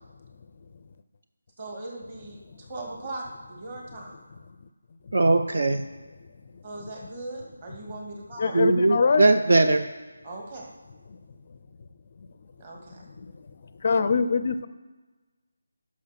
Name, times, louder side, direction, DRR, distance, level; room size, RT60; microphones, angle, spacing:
voice 1, 1.6-4.1 6.6-8.6 10.2-10.7 12.6-13.1, right 2 dB, 30° right, -1 dB, 2.3 m, -39 dB
voice 2, 5.1-5.8 8.5-9.8, right 2 dB, 60° right, 7 dB, 0.7 m, -20 dB
voice 3, 8.4-9.3 13.8-14.7, left 5 dB, 35° left, 12 dB, 0.4 m, -23 dB
11.5 x 6.2 x 5.9 m, 1.3 s
figure-of-eight pair, 175°, 0 cm